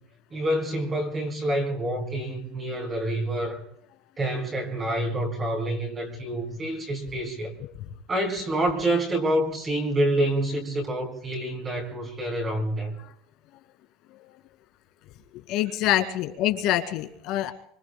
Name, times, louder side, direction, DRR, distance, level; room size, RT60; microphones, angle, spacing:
voice 1, 0.3-3.6 4.2-7.5 8.1-12.9, right 1 dB, 20° right, 4.3 m, -27 dB
voice 2, 15.5-17.5, left 13 dB, 50° left, 2.2 m, -25 dB
25.0 x 25.0 x 2.2 m
cardioid pair, 160°, 0 cm